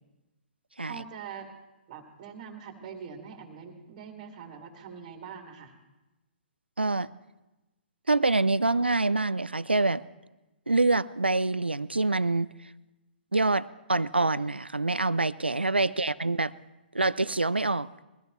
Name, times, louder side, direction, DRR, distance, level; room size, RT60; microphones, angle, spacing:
voice 1, 0.8-1.5 1.9-5.7 15.8-15.9, right 7 dB, 40° right, 1 dB, 2.2 m, -43 dB
voice 2, 6.8-7.1 8.1-10.0 10.7-12.5 13.3-16.5 16.9-17.9, right 2 dB, 90° right, 18 dB, 0.5 m, -25 dB
22.0 x 14.5 x 3.1 m, 1.0 s
figure-of-eight pair, 120°, 6 cm